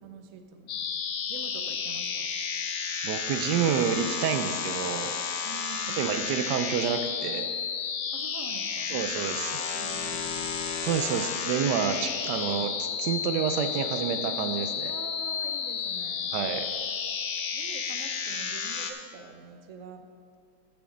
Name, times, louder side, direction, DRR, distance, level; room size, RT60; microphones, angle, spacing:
voice 1, 0.0-0.9 1.3-2.3 5.4-6.1 8.1-9.0 9.6-10.6 14.8-16.3 17.5-20.1, right 5 dB, 60° right, 6 dB, 1.0 m, -46 dB
sound 1, 0.7-18.9, left 6 dB, 85° left, 1.4 m, -32 dB
voice 2, 3.0-5.1 5.9-7.5 8.9-9.8 10.8-14.9 16.3-16.7, right 7 dB, 85° right, 8 dB, 1.2 m, -29 dB
13.0 x 7.0 x 3.8 m, 2.3 s
omnidirectional pair, 1.8 m